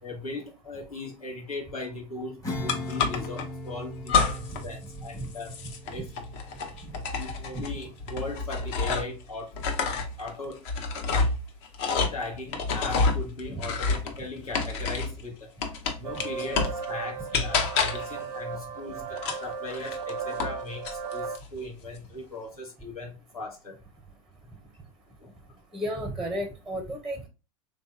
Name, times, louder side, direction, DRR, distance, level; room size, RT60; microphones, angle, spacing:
voice 1, 0.0-5.5 5.9-6.1 7.2-9.5 10.2-10.7 12.1-15.5 16.0-23.8 25.2-25.3, left 2 dB, 85° left, -1 dB, 1.1 m, -38 dB
Acoustic guitar / Strum, 2.4-8.4, left 1 dB, 15° left, 1.0 m, -40 dB
sound 1, 2.7-3.5 4.1-4.7 4.9-9.2 9.5-15.2 15.6-16.8 17.3-18.2 19.2-20.6 20.8-21.4, left 4 dB, 50° left, 0.7 m, -28 dB
sound 2, 16.0-21.4, right 5 dB, 80° right, 0.4 m, -36 dB
voice 2, 25.7-27.3, equal, ahead, 5 dB, 0.5 m, -33 dB
3.4 x 2.6 x 2.3 m, 0.29 s
hypercardioid pair, 90°, 18 cm